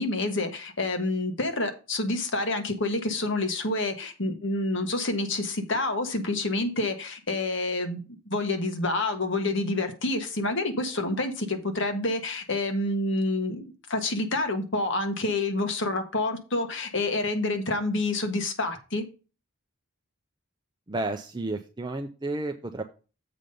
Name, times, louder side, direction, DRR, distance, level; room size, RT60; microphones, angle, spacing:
voice 1, 0.0-8.0 8.3-19.0, left 2 dB, 55° left, 1.4 m, -28 dB
voice 2, 20.9-22.8, right 2 dB, 20° right, 0.5 m, -32 dB
7.6 x 5.2 x 5.3 m
head